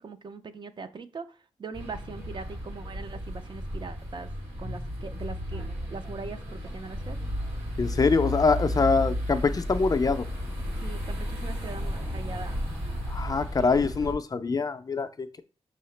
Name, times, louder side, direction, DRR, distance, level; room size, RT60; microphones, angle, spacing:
voice 1, 0.0-4.3 4.6-5.6 5.9-7.2 8.8-9.0 10.8-12.6 13.6-13.8, right 4 dB, 45° right, 9 dB, 0.4 m, -41 dB
sound 1, 1.7-14.1, left 1 dB, 90° right, 1.7 m, -33 dB
voice 2, 7.8-10.3 13.1-15.4, left 4 dB, 35° left, 9 dB, 0.3 m, -24 dB
5.5 x 2.8 x 3.2 m, 0.36 s
wide cardioid pair, 95°, 11 cm